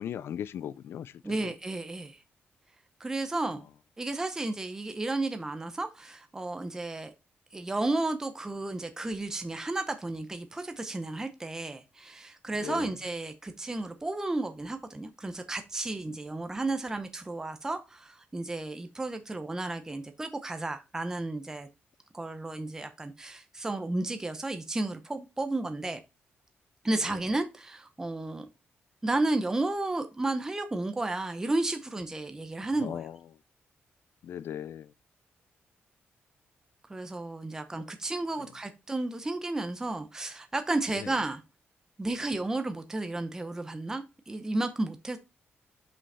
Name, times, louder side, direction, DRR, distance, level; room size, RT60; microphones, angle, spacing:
voice 1, 0.0-1.5 12.5-12.9 26.9-27.2 32.6-33.2 34.2-34.9 38.4-38.5 40.9-41.1, left 9 dB, 70° left, 0.4 m, -39 dB
voice 2, 1.2-2.2 3.0-3.7 4.0-7.1 7.5-21.7 22.1-26.0 26.8-28.5 29.0-33.0 36.9-41.4 42.0-45.2, right 2 dB, 15° right, 0.7 m, -33 dB
5.6 x 5.3 x 4.1 m
wide cardioid pair, 150°, 4 cm